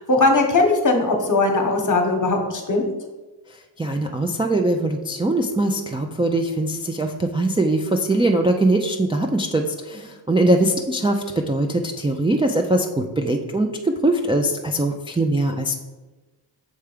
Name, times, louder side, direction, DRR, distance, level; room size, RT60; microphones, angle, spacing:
voice 1, 0.0-2.9, left 2 dB, 40° left, 3 dB, 1.1 m, -19 dB
voice 2, 3.8-15.8, right 1 dB, 15° right, 2 dB, 0.3 m, -21 dB
6.6 x 3.4 x 5.0 m, 1.2 s
wide cardioid pair, 105°, 45 cm